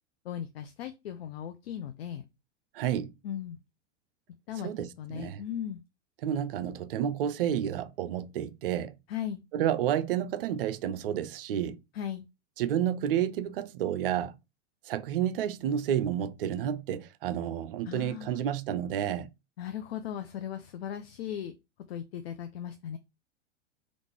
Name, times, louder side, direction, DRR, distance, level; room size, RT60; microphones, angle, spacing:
voice 1, 0.2-2.3 3.2-3.6 4.5-4.7 5.0-5.8 9.1-9.4 11.9-12.3 17.9-18.4 19.6-21.5 21.9-23.0, left 9 dB, 55° left, 0.4 m, -37 dB
voice 2, 2.7-3.1 4.6-5.4 6.2-8.9 9.5-11.8 12.6-14.3 14.9-19.3, right 10 dB, 50° right, 0.4 m, -30 dB
3.6 x 2.5 x 3.0 m
figure-of-eight pair, 90°, 36 cm